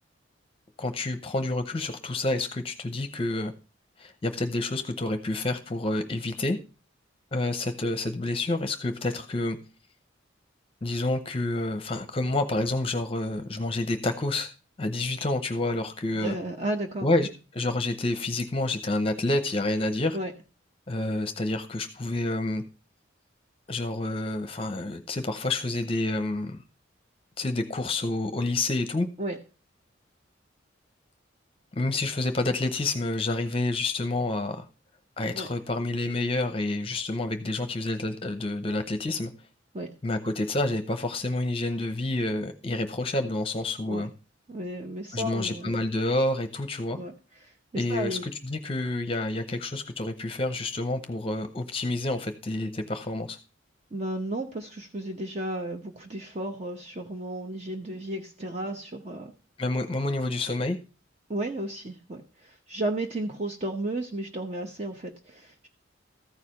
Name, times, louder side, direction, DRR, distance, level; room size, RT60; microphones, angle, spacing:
voice 1, 0.8-3.5 4.0-6.6 7.3-9.6 10.8-14.5 14.8-16.3 17.0-20.2 20.9-22.6 23.7-26.6 27.4-29.1 31.7-34.6 35.2-39.3 40.0-44.1 45.1-47.0 47.7-53.4 59.6-60.8, left 2 dB, 30° left, 8 dB, 0.7 m, -28 dB
voice 2, 16.1-17.1 20.1-20.3 29.2-29.4 35.3-35.5 39.7-39.9 43.9-44.1 44.5-45.8 46.9-47.1 47.4-48.2 53.9-59.3 61.3-65.7, right 1 dB, 35° right, 3 dB, 0.9 m, -33 dB
14.0 x 4.9 x 5.6 m, 0.33 s
head